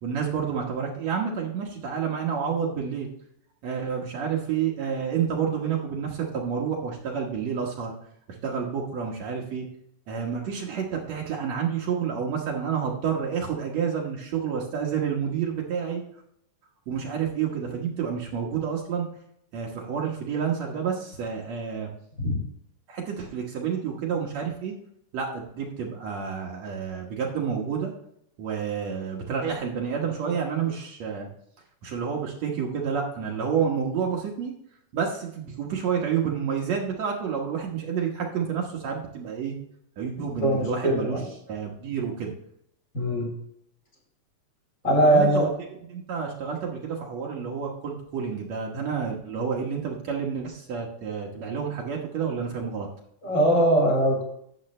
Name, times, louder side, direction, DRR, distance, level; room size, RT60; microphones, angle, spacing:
voice 1, 0.0-3.1 3.6-7.9 8.4-9.7 10.1-16.0 16.9-19.1 19.5-21.9 22.9-24.7 25.1-27.9 28.4-31.3 31.8-34.5 34.9-39.5 40.0-41.2 41.5-42.3 44.8-45.5 45.9-52.9, right 7 dB, 65° right, -1 dB, 2.4 m, -29 dB
voice 2, 40.2-41.2 42.9-43.3 44.8-45.5 53.2-54.2, right 1 dB, 35° left, -1 dB, 4.6 m, -21 dB
12.0 x 8.0 x 3.2 m, 0.72 s
omnidirectional pair, 3.6 m